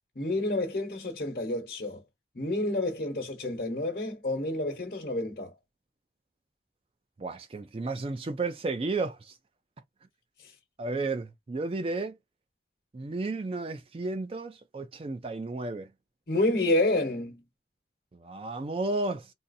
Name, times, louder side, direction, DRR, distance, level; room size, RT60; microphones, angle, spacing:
voice 1, 0.2-2.0 2.3-5.5 16.3-17.4, left 2 dB, 55° left, 1.0 m, -29 dB
voice 2, 7.2-9.3 10.8-12.2 12.9-15.9 18.1-19.3, right 3 dB, 30° right, 0.4 m, -33 dB
3.9 x 2.4 x 2.6 m
head